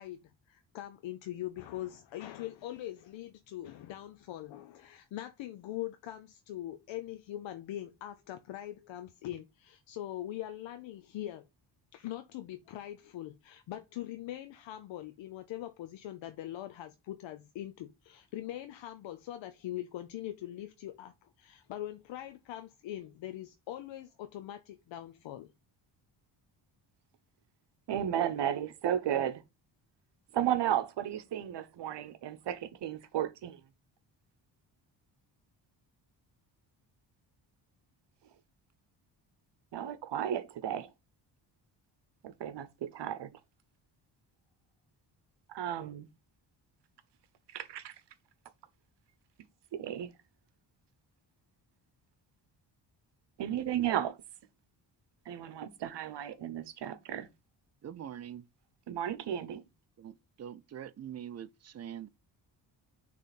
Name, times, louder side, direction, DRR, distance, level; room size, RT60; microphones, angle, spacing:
voice 1, 0.0-11.5 11.9-25.5, left 13 dB, 80° left, 0.7 m, -42 dB
voice 2, 27.9-29.4 30.3-33.6 39.7-40.9 42.2-43.3 45.5-46.1 47.5-47.9 49.7-50.1 53.4-54.2 55.3-57.3 58.9-59.6, right 10 dB, 65° right, 1.0 m, -34 dB
voice 3, 57.8-58.5 60.0-62.1, right 9 dB, 35° right, 0.5 m, -44 dB
6.7 x 3.4 x 4.2 m
cardioid pair, 95°, 44 cm